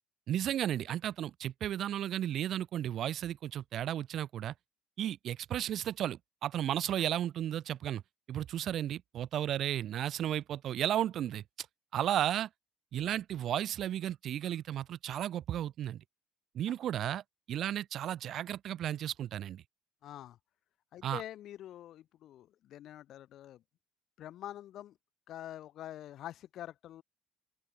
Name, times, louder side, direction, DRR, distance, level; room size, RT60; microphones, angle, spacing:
voice 1, 0.3-4.5 5.0-8.0 8.3-11.4 11.9-12.5 12.9-16.0 16.5-17.2 17.5-19.6 21.0-21.2, right 11 dB, 45° right, 0.9 m, -34 dB
voice 2, 20.0-20.4 20.9-23.6 24.2-25.0 25.3-27.0, left 12 dB, 45° left, 3.0 m, -46 dB
open air
cardioid pair, 165°, 0 cm